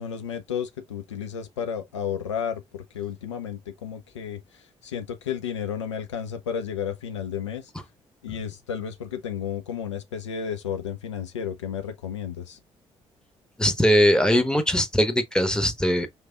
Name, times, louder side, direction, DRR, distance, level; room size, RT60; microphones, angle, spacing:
voice 1, 0.0-7.7 8.2-12.6, left 8 dB, 80° left, 0.4 m, -32 dB
voice 2, 13.6-16.1, equal, 5° left, 1.0 m, -21 dB
4.7 x 3.2 x 2.3 m
figure-of-eight pair, 40°, 15 cm